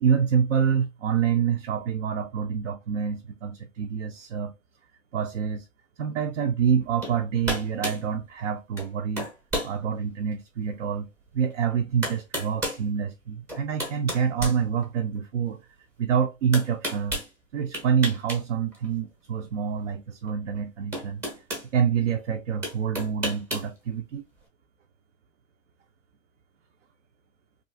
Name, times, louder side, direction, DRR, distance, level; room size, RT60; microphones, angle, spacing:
voice 1, 0.0-4.5 5.1-5.7 6.0-9.3 9.6-11.1 11.3-15.6 16.0-17.2 17.5-21.2 21.7-24.2, right 7 dB, 60° right, 0.5 m, -26 dB
sound 1, 7.0-7.2 7.4-8.0 8.8-8.9 9.2-9.7 10.3-10.4 11.5-11.6 12.0-12.8 13.5-15.2 16.5-17.3 17.7-18.4 18.7-18.9 20.3-20.4 20.9-21.7 22.6-23.7, equal, 10° right, 0.6 m, -32 dB
2.7 x 2.4 x 2.6 m
hypercardioid pair, 140°, 41 cm